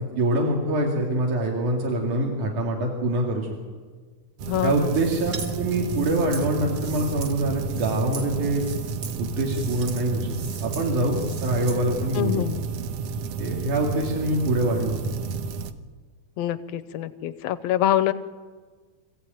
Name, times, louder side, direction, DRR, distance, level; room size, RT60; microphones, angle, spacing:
voice 1, 0.2-3.5 4.6-8.7 9.2-12.4 13.4-15.2, right 1 dB, 85° right, 0 dB, 3.8 m, -25 dB
sound 1, 4.4-15.7, right 5 dB, 65° right, 1.8 m, -31 dB
voice 2, 4.5-4.9 12.2-12.6 16.4-18.1, left 12 dB, 70° left, 12 dB, 1.9 m, -25 dB
sound 2, 4.9-5.5 5.9-7.3 7.6-8.3 8.6-9.2 9.4-10.0 10.3-10.9 11.2-11.8, right 5 dB, 45° right, 2.9 m, -40 dB
26.0 x 15.5 x 9.2 m, 1.5 s
omnidirectional pair, 3.4 m